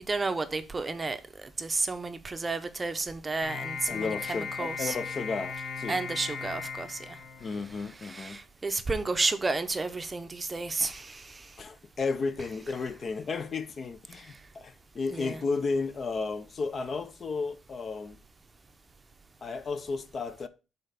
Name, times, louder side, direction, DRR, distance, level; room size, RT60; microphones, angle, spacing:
voice 1, 0.1-5.0 5.9-7.2 8.0-11.5 12.4-12.8 15.1-15.4, right 3 dB, 20° right, 0.6 m, -32 dB
sound 1, 3.4-7.9, left 5 dB, 55° left, 1.4 m, -37 dB
voice 2, 3.9-6.0 7.4-8.4 11.6-18.2 19.4-20.5, left 4 dB, 35° left, 0.5 m, -33 dB
6.7 x 4.0 x 5.0 m
cardioid pair, 140°, 0 cm